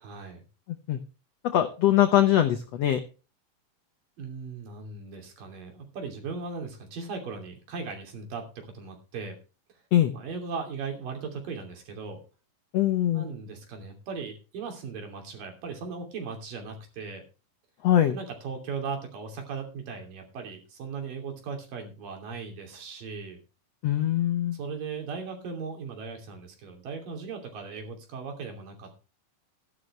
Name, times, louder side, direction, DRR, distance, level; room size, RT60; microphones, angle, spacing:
voice 1, 0.0-0.4 4.2-9.4 10.1-12.2 13.1-17.2 18.1-23.4 24.5-29.0, right 5 dB, 65° right, 3 dB, 4.5 m, -38 dB
voice 2, 0.7-1.0 1.4-3.0 9.9-10.1 12.7-13.3 17.8-18.2 23.8-24.6, left 12 dB, 75° left, 8 dB, 1.5 m, -22 dB
13.5 x 11.5 x 3.3 m, 0.33 s
omnidirectional pair, 4.2 m